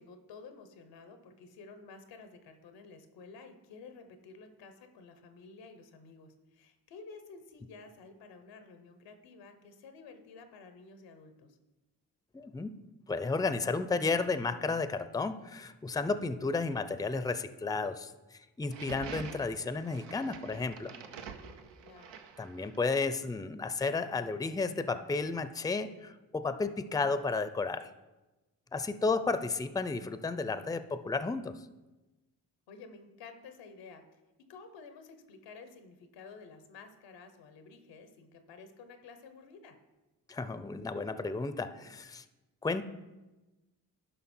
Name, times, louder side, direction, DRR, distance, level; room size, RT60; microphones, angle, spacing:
voice 1, 0.0-11.6 21.8-22.1 32.7-34.2 34.5-39.8, left 4 dB, 90° left, 8 dB, 1.1 m, -52 dB
voice 2, 12.3-12.7 13.1-20.9 22.4-27.9 28.7-31.6 40.3-42.2 42.6-42.8, left 4 dB, 10° left, 12 dB, 0.5 m, -33 dB
sound 1, 18.6-22.9, right 6 dB, 85° right, 0.8 m, -47 dB
11.5 x 5.3 x 4.4 m, 1.1 s
supercardioid pair, 55°, 42 cm